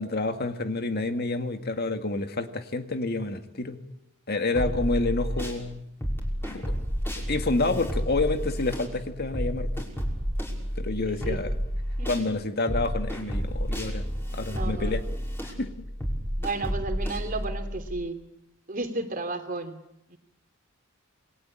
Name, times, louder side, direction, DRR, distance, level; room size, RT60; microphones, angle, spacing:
voice 1, 0.0-3.8 4.3-5.9 6.5-6.7 7.3-9.9 10.8-11.5 12.1-14.0 14.3-15.0 15.4-15.7, left 2 dB, 50° left, 7 dB, 2.0 m, -28 dB
sound 1, 4.5-5.6 6.0-12.3 12.7-17.9, equal, 10° left, 6.1 m, -31 dB
voice 2, 11.1-11.4 12.0-12.3 14.4-15.0 16.4-18.2 18.7-19.8 20.1-20.2, right 3 dB, 40° right, 7 dB, 3.1 m, -33 dB
28.0 x 21.5 x 8.9 m, 0.82 s
head